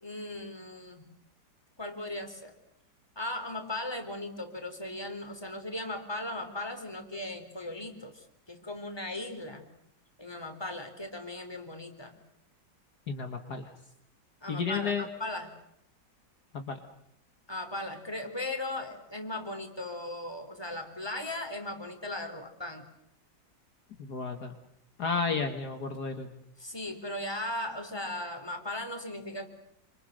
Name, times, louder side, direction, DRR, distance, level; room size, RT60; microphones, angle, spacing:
voice 1, 0.0-1.1 1.8-2.5 3.2-9.6 10.2-12.2 14.4-15.5 17.5-22.9 26.6-29.5, left 1 dB, 10° left, 5 dB, 3.8 m, -37 dB
voice 2, 13.1-13.7 14.5-15.1 16.5-16.8 24.0-24.5 25.0-26.3, left 5 dB, 55° left, 5 dB, 2.2 m, -32 dB
28.5 x 26.5 x 6.7 m, 0.76 s
omnidirectional pair, 2.0 m